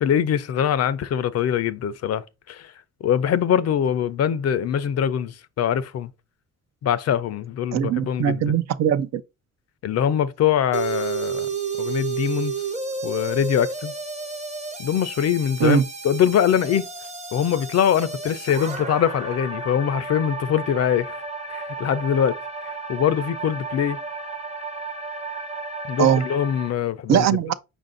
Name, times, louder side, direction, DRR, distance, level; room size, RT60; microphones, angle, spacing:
voice 1, 0.0-2.7 3.0-6.1 6.8-8.6 9.8-11.5 11.8-12.5 13.0-13.9 14.8-16.9 17.3-21.2 21.5-22.4 22.6-24.0 25.9-27.3, left 9 dB, 55° left, 0.5 m, -23 dB
voice 2, 7.7-9.2 15.6-15.8 26.0-26.2 27.1-27.5, right 9 dB, 60° right, 0.6 m, -20 dB
sound 1, 10.7-26.7, right 4 dB, 25° right, 0.7 m, -32 dB
5.0 x 2.6 x 3.7 m
cardioid pair, 90°, 30 cm